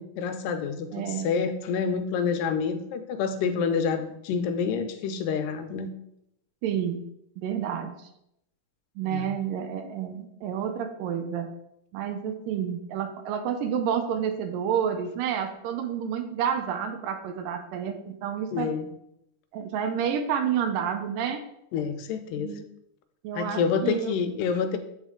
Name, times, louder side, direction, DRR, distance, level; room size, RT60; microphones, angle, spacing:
voice 1, 0.0-5.9 9.1-9.4 18.5-18.9 21.7-22.6 23.3-24.8, left 6 dB, 85° left, 8 dB, 2.3 m, -28 dB
voice 2, 0.9-1.3 6.6-7.0 7.4-8.0 9.0-11.5 11.9-18.7 19.5-21.4 22.4-22.6 23.2-24.2, right 8 dB, 90° right, 7 dB, 2.3 m, -29 dB
9.4 x 4.1 x 3.7 m, 0.79 s
omnidirectional pair, 3.9 m